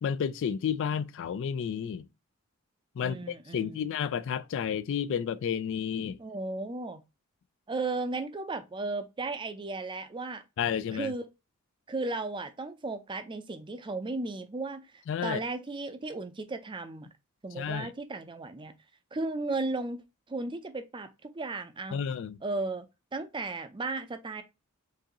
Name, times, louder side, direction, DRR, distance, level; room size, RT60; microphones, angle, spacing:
voice 1, 0.0-2.1 3.0-6.2 10.6-11.1 15.1-15.4 17.6-17.9 21.9-22.4, left 7 dB, 60° left, 0.3 m, -31 dB
voice 2, 3.0-3.9 6.2-7.0 7.7-10.4 10.9-11.2 11.9-17.1 17.4-18.7 19.1-20.0 20.3-22.0 22.4-22.9 23.1-24.4, right 3 dB, 20° right, 0.5 m, -35 dB
4.7 x 2.6 x 3.0 m
head